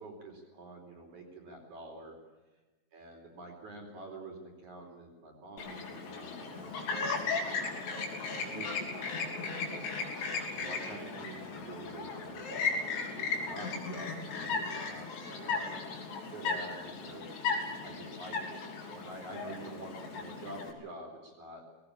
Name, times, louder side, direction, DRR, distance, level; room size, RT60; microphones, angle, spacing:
voice 1, 0.0-2.2 2.9-9.9 10.5-17.4 17.8-21.6, right 2 dB, 40° right, 3 dB, 5.1 m, -48 dB
Chirp tweet, 5.6-20.7, left 4 dB, 60° left, 5.2 m, -36 dB
20.0 x 18.5 x 8.8 m, 1.2 s
omnidirectional pair, 5.9 m